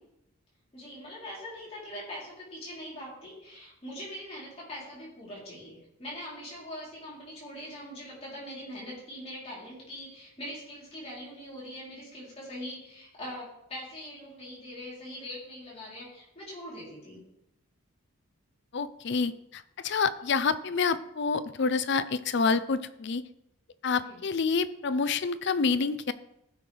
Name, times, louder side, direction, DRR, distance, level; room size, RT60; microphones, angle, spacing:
voice 1, 0.7-17.2 24.0-24.2, equal, 25° left, -7 dB, 3.5 m, -42 dB
voice 2, 18.7-23.2 23.8-26.1, left 4 dB, 50° left, 14 dB, 0.5 m, -28 dB
15.0 x 6.1 x 3.4 m, 0.83 s
head